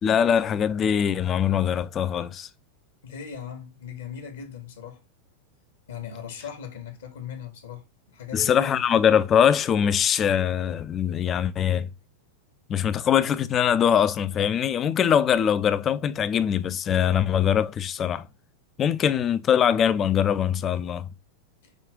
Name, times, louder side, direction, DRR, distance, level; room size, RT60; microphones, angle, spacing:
voice 1, 0.0-2.5 8.3-11.9 12.7-18.3 18.8-21.1, left 8 dB, 25° left, 0.3 m, -22 dB
voice 2, 3.0-5.0 5.9-8.9 21.6-21.7, left 7 dB, 60° left, 1.1 m, -39 dB
5.0 x 2.4 x 3.5 m
figure-of-eight pair, 90°, 0 cm